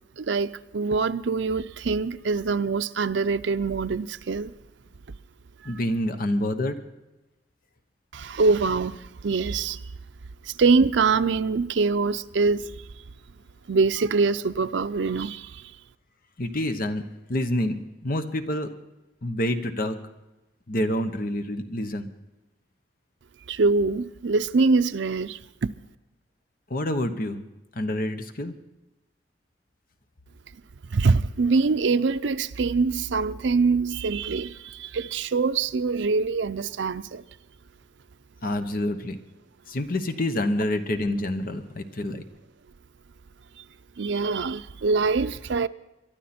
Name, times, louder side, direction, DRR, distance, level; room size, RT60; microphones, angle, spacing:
voice 1, 0.2-4.5 8.1-9.0 9.2-9.8 10.5-12.7 13.7-15.6 23.5-25.7 30.9-37.2 44.0-45.7, right 4 dB, 85° right, 0.5 m, -24 dB
voice 2, 5.6-6.7 16.4-17.0 17.3-18.7 19.2-20.0 20.7-22.1 26.7-27.4 27.7-28.5 38.4-39.2 39.7-42.2, left 1 dB, 50° left, 1.1 m, -27 dB
23.0 x 12.0 x 4.3 m
head